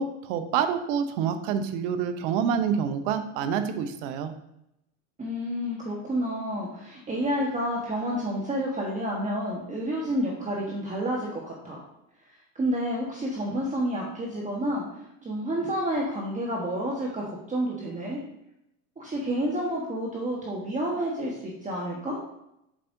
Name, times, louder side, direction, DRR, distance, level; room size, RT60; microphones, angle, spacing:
voice 1, 0.0-4.3, right 7 dB, 60° right, 8 dB, 0.8 m, -27 dB
voice 2, 5.2-11.8 12.5-18.2 19.0-22.2, equal, 20° right, -3 dB, 1.4 m, -30 dB
7.4 x 5.5 x 2.7 m, 0.82 s
hypercardioid pair, 100°, 41 cm